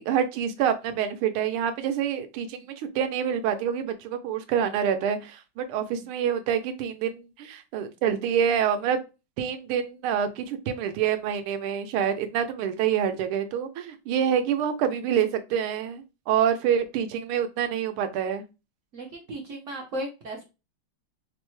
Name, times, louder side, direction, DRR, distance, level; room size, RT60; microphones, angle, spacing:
voice 1, 0.0-9.0 9.4-18.4, right 8 dB, 80° right, 8 dB, 1.5 m, -27 dB
voice 2, 18.9-20.5, right 1 dB, 65° right, 1 dB, 0.7 m, -35 dB
5.1 x 2.1 x 3.0 m, 0.27 s
omnidirectional pair, 2.4 m